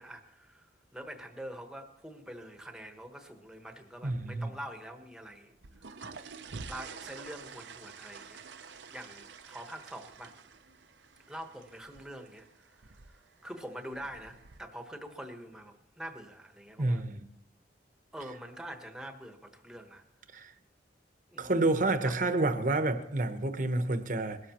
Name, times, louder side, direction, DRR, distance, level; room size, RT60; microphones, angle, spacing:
voice 1, 0.0-5.5 6.7-10.4 11.3-12.9 13.4-17.0 18.1-20.0 21.3-21.5 22.0-22.2, right 1 dB, 5° right, 4 dB, 1.2 m, -45 dB
voice 2, 4.0-4.5 16.8-17.2 20.3-20.5 21.4-24.4, right 2 dB, 45° right, 9 dB, 1.0 m, -29 dB
sound 1, 5.5-14.6, right 5 dB, 85° right, 0.8 m, -49 dB
21.0 x 13.0 x 3.0 m, 0.80 s
head